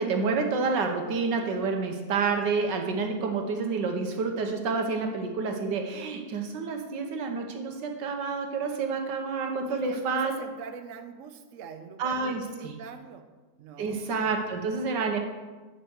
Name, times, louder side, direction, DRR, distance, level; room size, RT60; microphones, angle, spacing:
voice 1, 0.0-10.3 12.0-12.8 13.8-15.2, right 4 dB, 75° right, 4 dB, 1.7 m, -29 dB
voice 2, 9.7-13.3 13.6-14.0, right 6 dB, 60° right, 8 dB, 0.9 m, -43 dB
9.5 x 5.9 x 6.4 m, 1.3 s
omnidirectional pair, 1.9 m